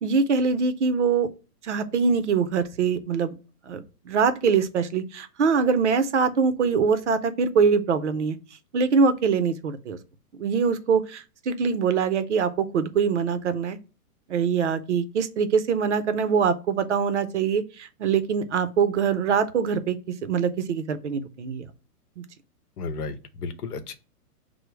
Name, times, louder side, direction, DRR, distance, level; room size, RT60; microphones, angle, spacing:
voice 1, 0.0-1.3 1.6-3.4 3.7-8.4 8.7-10.0 10.4-13.8 14.3-21.6 22.2-22.3, right 5 dB, 50° right, 0.5 m, -23 dB
voice 2, 22.8-23.9, left 4 dB, 70° left, 0.8 m, -33 dB
4.9 x 2.0 x 4.4 m
hypercardioid pair, 175°, 47 cm